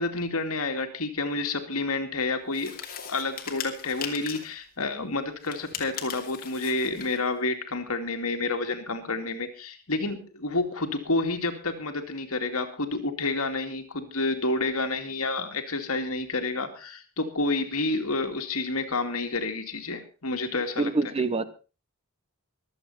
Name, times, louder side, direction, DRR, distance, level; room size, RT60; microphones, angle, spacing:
voice 1, 0.0-2.7 3.1-20.9, left 3 dB, 70° left, 2.4 m, -29 dB
sound 1, 2.5-4.6 5.4-7.2, left 7 dB, 40° left, 2.6 m, -39 dB
voice 2, 20.8-21.4, right 3 dB, 25° right, 0.9 m, -25 dB
24.5 x 8.4 x 4.2 m
head